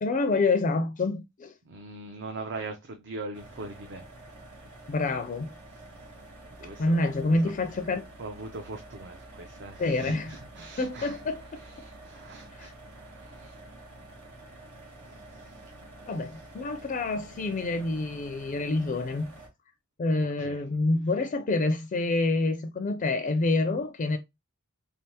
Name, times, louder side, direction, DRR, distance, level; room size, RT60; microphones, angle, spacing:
voice 1, 0.0-1.5 4.9-5.5 6.8-8.0 9.8-10.3 10.8-11.6 12.5-12.7 16.1-19.3 20.0-24.2, left 2 dB, 35° left, 0.4 m, -27 dB
voice 2, 1.7-4.1 6.6-7.0 7.4-7.5 8.2-11.2 11.6-13.6 15.0-15.7 16.2-16.4 20.4-20.6, right 3 dB, 55° right, 0.6 m, -41 dB
sound 1, 3.3-19.5, right 2 dB, 80° right, 1.1 m, -48 dB
3.5 x 3.4 x 2.8 m
head